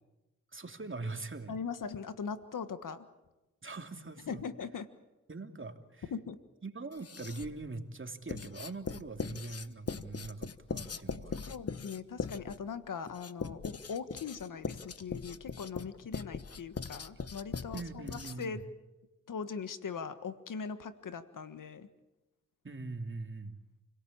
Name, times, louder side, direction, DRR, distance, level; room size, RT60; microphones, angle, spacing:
voice 1, 0.5-1.5 3.6-4.4 5.3-6.1 6.6-11.6 17.7-18.6 22.6-23.6, right 3 dB, 40° right, 6 dB, 2.9 m, -42 dB
voice 2, 1.5-3.1 4.3-4.9 6.1-6.4 11.5-18.1 18.4-18.6 19.3-21.9, left 6 dB, 85° left, 11 dB, 1.5 m, -40 dB
Writing, 6.9-7.6 8.3-18.6, left 5 dB, 50° left, 1.2 m, -40 dB
29.0 x 17.5 x 8.8 m, 1.0 s
cardioid pair, 45°, 31 cm